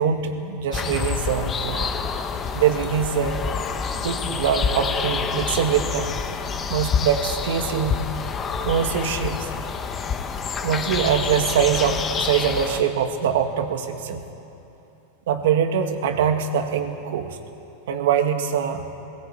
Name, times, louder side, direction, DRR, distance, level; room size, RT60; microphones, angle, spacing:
voice 1, 0.0-1.9 2.5-3.5 4.0-6.2 6.7-8.0 8.6-9.5 10.6-14.2 15.3-17.4 17.9-18.9, right 8 dB, 80° right, 6 dB, 1.8 m, -23 dB
sound 1, 0.7-12.8, left 6 dB, 25° left, 1.3 m, -27 dB
19.5 x 17.5 x 8.6 m, 2.8 s
supercardioid pair, 135°, 0 cm